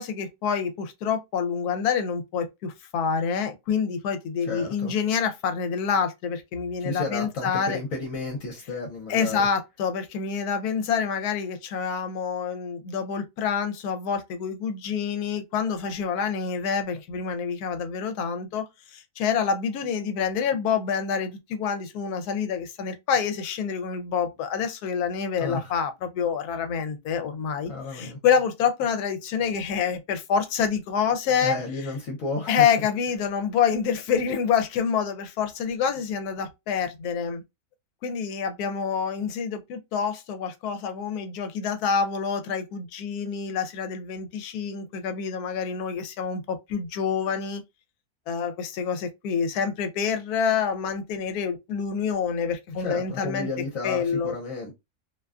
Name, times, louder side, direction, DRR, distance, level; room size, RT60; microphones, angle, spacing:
voice 1, 0.0-7.8 9.1-18.7 18.9-31.5 32.5-37.4 38.0-47.6 48.3-53.5 53.8-54.3, left 6 dB, 85° left, 1.1 m, -27 dB
voice 2, 4.5-4.9 6.8-9.5 25.4-25.7 27.7-28.2 31.4-32.7 52.8-54.7, left 3 dB, 65° left, 1.1 m, -32 dB
2.7 x 2.2 x 2.3 m
omnidirectional pair, 1.6 m